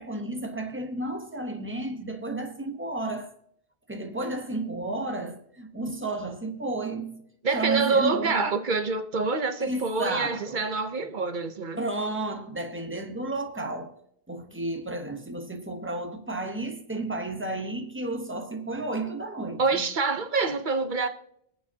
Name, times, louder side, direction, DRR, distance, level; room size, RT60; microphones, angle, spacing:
voice 1, 0.0-3.3 3.9-8.4 9.6-10.6 11.8-13.9 14.3-19.9, right 2 dB, 10° right, 0.9 m, -32 dB
voice 2, 7.4-11.8 19.6-21.1, right 4 dB, 50° right, 0.9 m, -26 dB
23.5 x 8.1 x 2.8 m
omnidirectional pair, 1.1 m